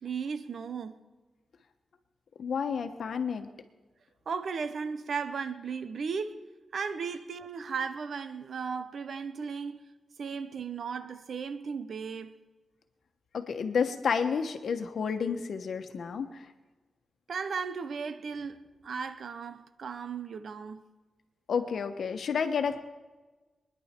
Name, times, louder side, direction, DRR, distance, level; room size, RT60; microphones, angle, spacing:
voice 1, 0.0-1.0 4.3-6.4 6.7-9.8 10.2-12.3 17.3-20.8, right 5 dB, 70° right, 0.8 m, -36 dB
voice 2, 2.4-3.5 13.3-16.5 21.5-22.8, left 6 dB, 75° left, 1.2 m, -30 dB
24.5 x 10.5 x 4.5 m
wide cardioid pair, 90°, 0 cm